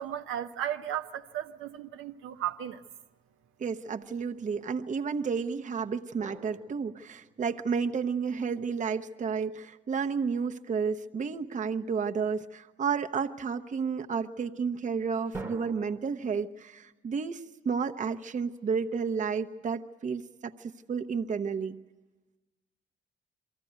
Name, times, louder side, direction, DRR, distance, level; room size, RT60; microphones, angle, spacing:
voice 1, 0.0-2.8, right 11 dB, 80° right, 0.8 m, -35 dB
voice 2, 3.6-21.8, right 5 dB, 40° right, 0.8 m, -31 dB
sound 1, 6.2-8.3 15.3-16.0, right 2 dB, 15° right, 1.1 m, -45 dB
23.5 x 14.5 x 9.3 m
cardioid pair, 90°, 20 cm